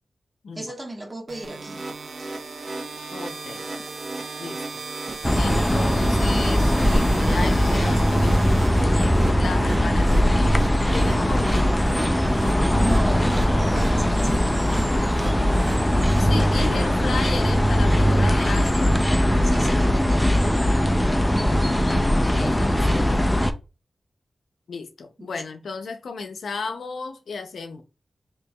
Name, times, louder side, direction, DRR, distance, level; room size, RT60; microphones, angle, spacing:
voice 1, 0.5-1.8 2.2-2.3 12.8-13.4 13.7-14.7 19.4-20.4 25.2-25.4, right 1 dB, 30° right, 1.3 m, -35 dB
sound 1, 1.3-9.3, right 4 dB, 85° right, 0.6 m, -38 dB
sound 2, 1.4-16.2, right 2 dB, 60° right, 1.1 m, -37 dB
voice 2, 3.1-3.7 4.4-4.6 5.3-11.7 16.2-18.9 21.5-23.2 24.7-27.8, left 4 dB, 85° left, 0.6 m, -34 dB
sound 3, 5.2-23.5, equal, 10° left, 0.5 m, -20 dB
4.4 x 2.9 x 2.3 m
cardioid pair, 55°, 0 cm